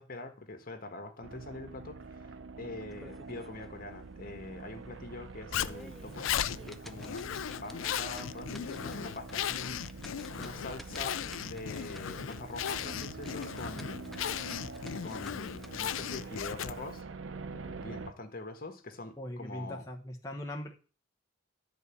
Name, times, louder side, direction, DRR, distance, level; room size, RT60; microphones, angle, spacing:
voice 1, 0.0-7.2 7.6-9.8 10.4-14.2 15.0-17.1 17.5-19.8, left 2 dB, 50° left, 6 dB, 1.4 m, -44 dB
sound 1, 1.2-18.1, right 4 dB, 70° right, 0.6 m, -46 dB
sound 2, 2.9-3.6 4.0-4.1 4.6-4.7 5.3-15.7, equal, ahead, 0.5 m, -53 dB
Zipper (clothing), 5.5-17.0, left 9 dB, 85° left, 0.4 m, -37 dB
voice 2, 19.2-20.7, left 1 dB, 15° left, 1 dB, 1.0 m, -40 dB
12.0 x 4.2 x 7.1 m, 0.37 s
head